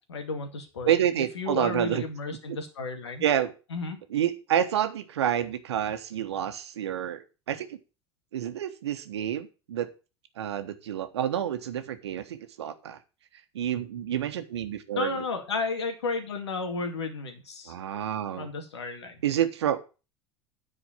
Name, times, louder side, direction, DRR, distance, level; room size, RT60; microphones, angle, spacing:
voice 1, 0.1-0.9 1.4-3.2 3.7-4.0 14.9-17.7 18.3-19.2, left 3 dB, 80° left, 5 dB, 2.1 m, -32 dB
voice 2, 0.8-2.0 2.5-2.6 3.2-3.5 4.1-7.2 7.5-7.8 8.3-9.9 10.4-13.0 13.5-15.2 17.7-18.5 19.2-19.8, right 10 dB, 80° right, 9 dB, 1.2 m, -28 dB
9.9 x 4.9 x 7.1 m, 0.32 s
hypercardioid pair, 75°, 14 cm